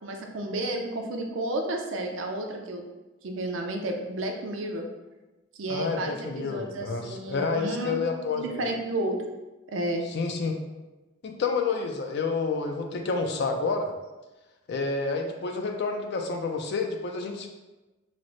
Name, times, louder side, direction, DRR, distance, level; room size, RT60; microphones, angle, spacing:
voice 1, 0.0-2.8 3.2-4.8 5.6-8.0 8.3-9.3 9.7-10.0, right 1 dB, 65° right, 2 dB, 0.5 m, -31 dB
voice 2, 5.7-8.7 10.1-10.6 11.2-13.9 14.7-17.5, left 4 dB, 55° left, 4 dB, 0.4 m, -29 dB
3.2 x 2.0 x 3.8 m, 1.1 s
head